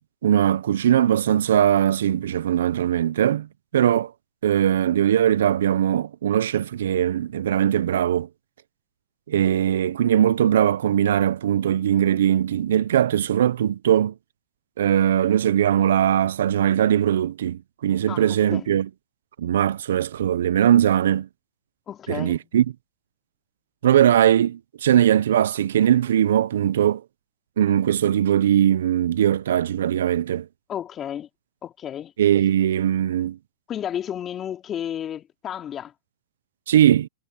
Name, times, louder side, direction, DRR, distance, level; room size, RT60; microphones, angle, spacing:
voice 1, 0.2-3.5 3.7-4.1 4.4-8.3 9.3-14.1 14.8-18.9 19.4-21.3 22.1-22.6 23.8-27.0 27.6-30.5 32.2-33.4 36.7-37.1, right 10 dB, 80° right, 0.6 m, -20 dB
voice 2, 18.1-18.7 21.9-22.5 30.7-31.3 31.6-32.1 33.7-35.9, left 10 dB, 25° left, 3.4 m, -32 dB
hypercardioid pair, 125°, 0 cm